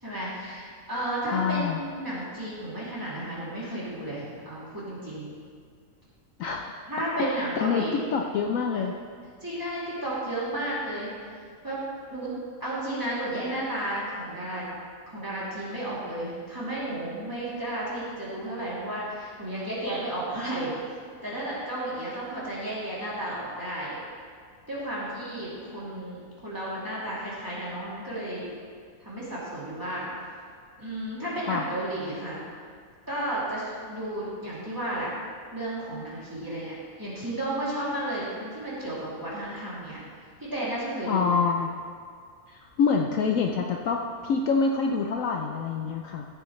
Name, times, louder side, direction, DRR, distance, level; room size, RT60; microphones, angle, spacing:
voice 1, 0.0-5.3 6.9-8.1 9.4-11.1 11.6-11.8 12.1-12.3 12.6-14.7 15.1-20.7 21.2-24.0 24.7-28.4 29.0-30.1 30.8-32.4 33.1-35.1 35.5-40.0 40.4-41.4, right 1 dB, 15° right, -9 dB, 2.8 m, -33 dB
voice 2, 1.3-1.8 6.4-6.7 7.2-8.9 31.5-31.6 41.1-41.7 42.5-46.2, left 5 dB, 70° left, 2 dB, 0.9 m, -26 dB
14.5 x 8.0 x 3.2 m, 2.1 s
omnidirectional pair, 1.6 m